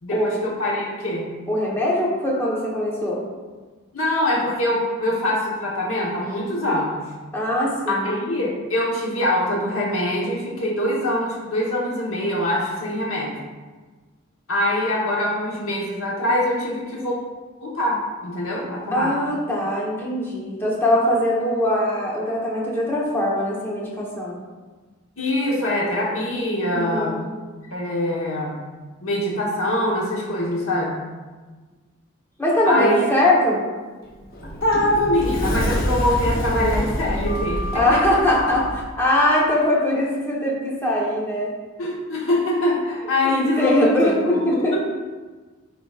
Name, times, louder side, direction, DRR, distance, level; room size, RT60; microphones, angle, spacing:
voice 1, 0.0-1.3 3.9-7.0 7.9-13.4 14.5-17.2 17.6-19.1 25.2-27.2 27.7-28.6 29.0-31.0 32.7-33.0 34.6-38.0 41.8-44.8, left 1 dB, 80° left, -4 dB, 1.1 m, -23 dB
voice 2, 1.5-3.2 7.3-8.2 18.9-24.4 26.7-27.2 32.4-33.6 37.7-41.5 43.2-44.8, left 1 dB, 10° left, -5 dB, 1.0 m, -21 dB
Sliding door, 34.0-38.8, equal, 45° left, 0.8 m, -26 dB
9.8 x 3.9 x 2.4 m, 1.3 s
head